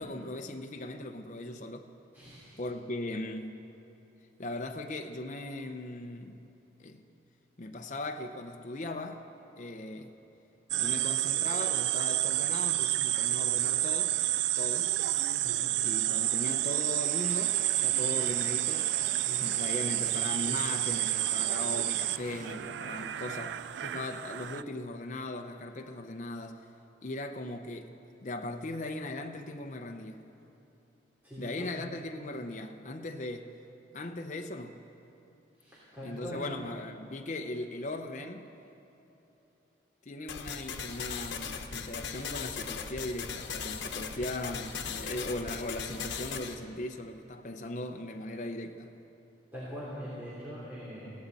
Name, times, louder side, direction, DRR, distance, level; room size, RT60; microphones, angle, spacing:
voice 1, 0.0-1.9 2.6-3.6 4.4-6.4 6.8-7.0 7.6-9.3 9.6-10.1 10.8-14.2 14.6-14.9 15.8-18.9 19.4-26.7 27.0-27.9 28.2-30.2 31.4-33.5 33.9-34.8 36.0-38.5 40.1-48.9, left 2 dB, 40° left, 0.7 m, -38 dB
voice 2, 2.1-2.6 15.4-15.6 19.2-19.5 31.2-31.7 35.6-36.5 49.5-51.1, equal, 10° right, 3.2 m, -42 dB
sound 1, 10.7-24.6, right 14 dB, 75° right, 0.3 m, -30 dB
Stream, 17.0-22.5, right 3 dB, 50° right, 0.9 m, -48 dB
sound 2, 40.3-46.6, left 6 dB, 90° left, 1.0 m, -38 dB
21.0 x 17.0 x 4.1 m
head